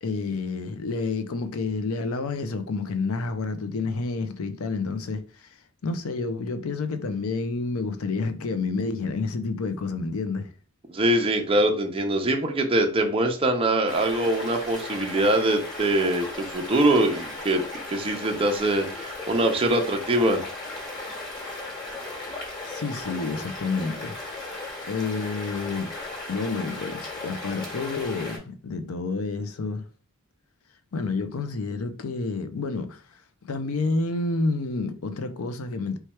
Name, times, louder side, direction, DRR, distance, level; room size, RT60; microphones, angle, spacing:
voice 1, 0.0-5.5 5.8-10.5 22.7-24.4 24.9-25.9 26.3-29.9 30.9-36.0, left 3 dB, 65° left, 0.5 m, -29 dB
voice 2, 10.9-20.4, right 1 dB, 25° right, 0.6 m, -23 dB
sound 1, 13.9-28.4, left 2 dB, 20° left, 1.4 m, -36 dB
3.1 x 2.3 x 4.3 m
head